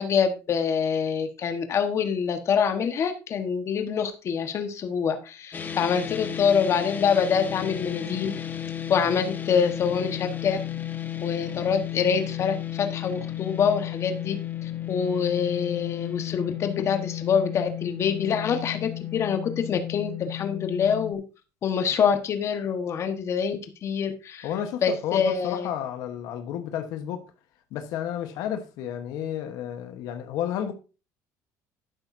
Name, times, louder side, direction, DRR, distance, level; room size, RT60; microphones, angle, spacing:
voice 1, 0.0-8.3 8.9-10.6 11.2-14.4 14.6-21.2 21.6-24.5 24.8-25.7, left 6 dB, 45° left, 1.4 m, -25 dB
sound 1, 5.5-21.1, left 11 dB, 30° left, 1.1 m, -33 dB
voice 2, 24.4-27.2 27.7-30.7, left 10 dB, 75° left, 1.2 m, -31 dB
11.5 x 9.1 x 2.7 m
cardioid pair, 115°, 7 cm